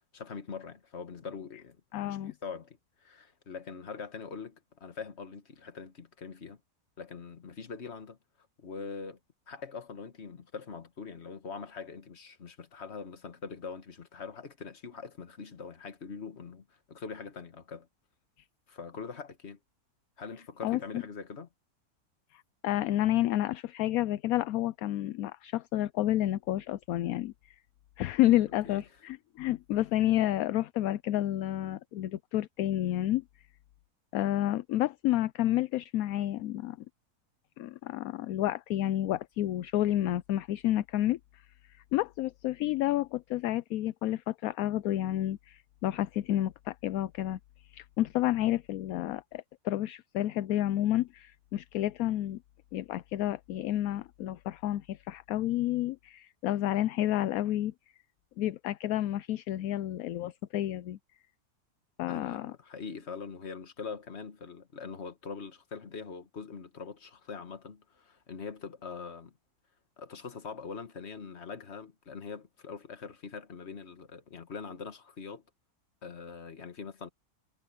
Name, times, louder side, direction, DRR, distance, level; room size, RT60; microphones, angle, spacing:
voice 1, 0.0-1.8 2.0-6.6 7.0-8.2 8.6-9.2 9.5-17.9 18.7-19.6 20.2-21.5 28.6-28.8 62.1-69.3 70.0-75.4 76.0-77.1, left 5 dB, 45° left, 1.7 m, -43 dB
voice 2, 1.9-2.3 20.6-20.8 22.3-27.6 28.0-33.2 34.1-36.8 37.6-41.4 41.9-47.4 47.6-52.4 52.7-57.7 58.4-61.0 62.0-62.5, left 13 dB, 75° left, 1.0 m, -30 dB
omnidirectional pair, 1.6 m